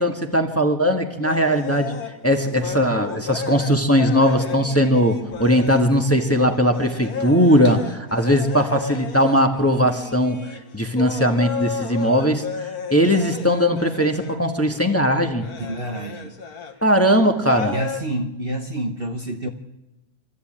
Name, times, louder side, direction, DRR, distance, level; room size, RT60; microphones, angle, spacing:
voice 1, 0.0-2.0 2.2-7.8 8.1-10.4 10.7-15.5 16.8-17.7, equal, 10° left, 4 dB, 1.5 m, -19 dB
sound 1, 1.2-16.8 17.4-18.0, left 6 dB, 75° left, 2.0 m, -33 dB
voice 2, 15.6-16.4 17.7-19.5, right 1 dB, 40° right, 4 dB, 1.3 m, -28 dB
25.0 x 14.0 x 8.9 m, 1.0 s
omnidirectional pair, 1.6 m